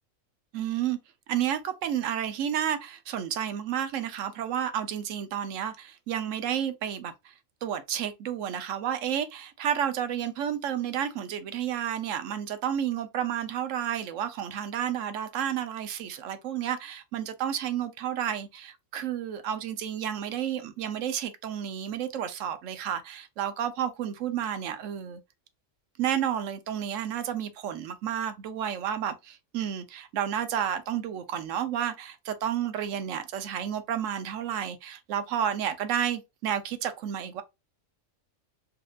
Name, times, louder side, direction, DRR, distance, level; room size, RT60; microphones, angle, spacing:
voice 1, 0.5-1.0 1.3-7.3 7.6-25.2 26.0-37.4, right 9 dB, 75° right, 0.9 m, -31 dB
4.2 x 2.5 x 2.3 m
omnidirectional pair, 1.4 m